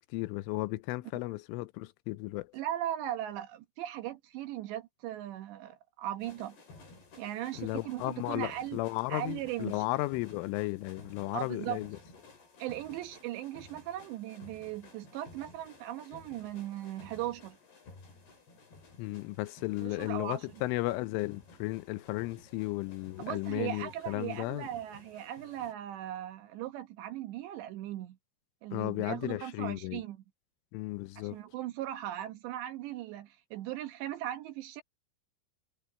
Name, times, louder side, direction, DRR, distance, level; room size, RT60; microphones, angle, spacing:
voice 1, 0.0-2.5 7.6-12.0 19.0-24.7 28.7-30.0 30.7-31.4, left 19 dB, 90° left, 3.2 m, -34 dB
voice 2, 2.5-6.6 7.2-8.8 9.1-9.8 11.3-11.8 12.6-17.6 19.8-20.5 23.2-28.2 28.6-30.2 31.2-34.8, right 13 dB, 75° right, 3.1 m, -38 dB
sound 1, 6.2-25.7, left 3 dB, 55° left, 8.8 m, -55 dB
omnidirectional pair, 5.6 m